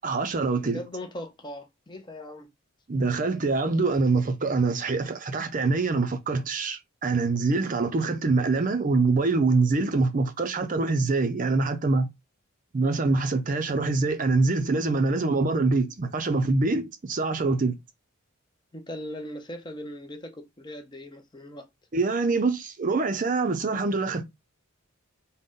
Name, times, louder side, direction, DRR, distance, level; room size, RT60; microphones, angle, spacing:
voice 1, 0.0-0.8 2.9-12.1 12.7-17.8 21.9-24.2, right 3 dB, 40° right, 0.5 m, -24 dB
voice 2, 0.6-2.5 18.7-21.7, left 1 dB, 20° left, 0.6 m, -39 dB
3.8 x 2.1 x 3.6 m
head